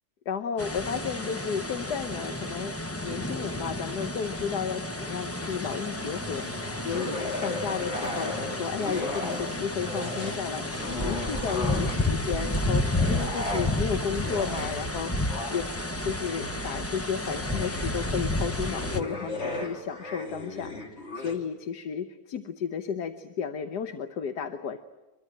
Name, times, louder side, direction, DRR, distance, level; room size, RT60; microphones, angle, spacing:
voice 1, 0.2-15.7 16.0-24.8, left 7 dB, 85° left, 8 dB, 1.6 m, -33 dB
sound 1, 0.6-19.0, left 1 dB, 15° left, 0.7 m, -31 dB
sound 2, 5.4-15.2, left 2 dB, 60° left, 2.4 m, -44 dB
sound 3, 6.9-9.6 9.8-12.2 12.7-21.4, left 2 dB, 40° left, 3.4 m, -36 dB
24.5 x 23.0 x 8.9 m, 1.1 s
omnidirectional pair, 1.7 m